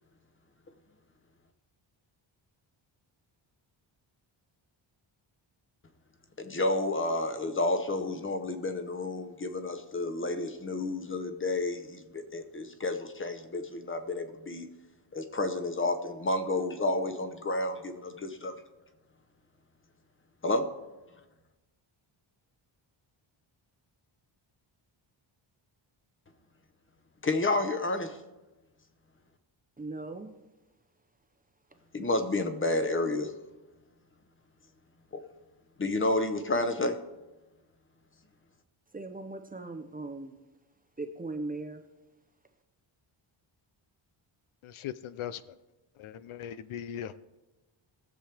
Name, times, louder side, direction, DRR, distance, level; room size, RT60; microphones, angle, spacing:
voice 1, 6.4-14.7 15.1-18.5 20.4-20.7 27.2-28.2 31.9-33.3 35.1-35.2 35.8-37.0, left 2 dB, 25° left, 8 dB, 0.9 m, -30 dB
voice 2, 29.8-30.3 38.9-40.3 41.0-41.8, right 2 dB, 15° right, 6 dB, 0.6 m, -38 dB
voice 3, 44.6-45.4 46.0-47.1, left 10 dB, 75° left, 15 dB, 0.6 m, -39 dB
20.5 x 7.4 x 3.4 m, 1.1 s
wide cardioid pair, 165°, 49 cm